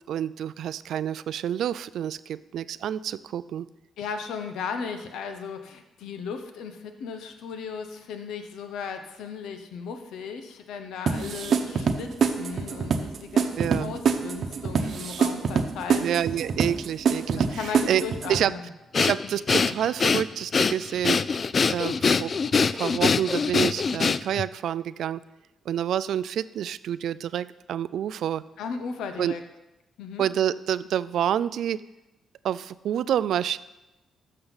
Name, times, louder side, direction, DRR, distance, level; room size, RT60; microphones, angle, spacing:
voice 1, 0.1-3.7 13.6-14.0 16.0-18.0 18.3-18.5 19.0-25.2 25.7-28.4 29.2-29.3 30.2-31.8 32.4-33.6, right 10 dB, 75° right, 16 dB, 0.3 m, -28 dB
voice 2, 4.0-12.1 12.4-16.1 17.4-18.7 28.6-29.4 30.0-30.2, left 6 dB, 85° left, 7 dB, 0.9 m, -36 dB
sound 1, 11.1-18.4, right 6 dB, 60° right, 0.9 m, -25 dB
Breathing, 18.9-24.5, left 5 dB, 40° left, 0.3 m, -23 dB
13.5 x 6.5 x 4.0 m, 0.99 s
cardioid pair, 90°, 0 cm